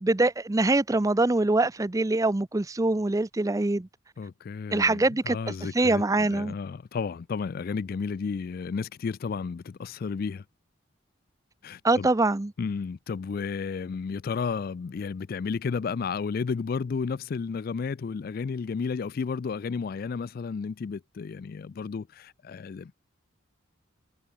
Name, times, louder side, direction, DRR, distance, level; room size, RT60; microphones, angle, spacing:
voice 1, 0.0-3.9 4.7-6.5 11.8-12.5, right 2 dB, 15° right, 0.5 m, -24 dB
voice 2, 4.2-10.4 11.6-12.1 12.6-22.9, left 5 dB, 45° left, 0.3 m, -32 dB
head